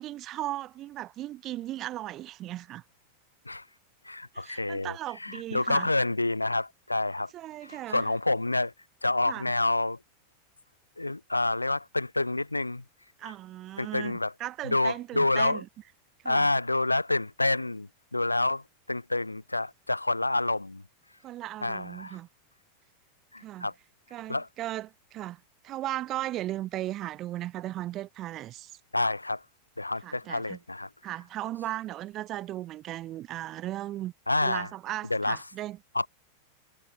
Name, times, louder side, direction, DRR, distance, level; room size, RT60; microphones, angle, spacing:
voice 1, 0.0-2.8 4.3-5.9 7.3-8.0 9.3-9.5 13.2-15.7 16.2-16.5 21.2-22.3 23.4-23.7 24.1-28.7 30.0-30.6 31.0-34.1 34.4-35.8, right 14 dB, 35° right, 1.0 m, -37 dB
voice 2, 4.0-7.3 7.6-8.7 9.0-10.0 11.0-12.8 13.2-13.3 13.8-14.3 14.6-15.6 16.2-20.8 21.6-22.2 23.3-23.7 24.3-24.5 28.9-29.4 29.8-30.9 34.3-34.7 35.1-35.4 35.9-36.1, left 2 dB, 85° left, 0.4 m, -28 dB
figure-of-eight pair, 90°, 0 cm